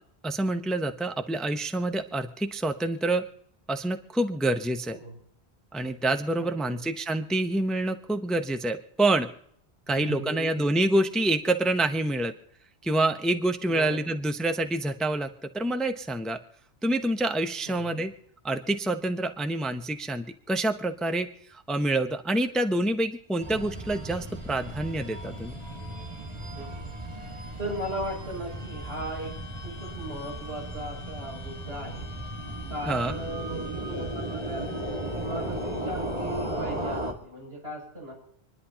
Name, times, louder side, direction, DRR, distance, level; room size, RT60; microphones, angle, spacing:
voice 1, 0.2-3.3 3.7-5.0 5.7-9.3 9.9-12.3 12.8-16.4 16.8-18.1 18.4-25.6 32.9-33.2, right 1 dB, ahead, 7 dB, 0.7 m, -27 dB
voice 2, 6.4-6.9 9.9-10.7 13.7-14.1 17.7-18.0 26.5-26.8 27.2-29.3 29.6-32.1 32.7-38.1, right 1 dB, 80° right, -3 dB, 7.1 m, -37 dB
sound 1, 23.4-37.1, right 1 dB, 35° right, 2.0 m, -35 dB
26.5 x 11.0 x 2.9 m, 0.66 s
omnidirectional pair, 1.1 m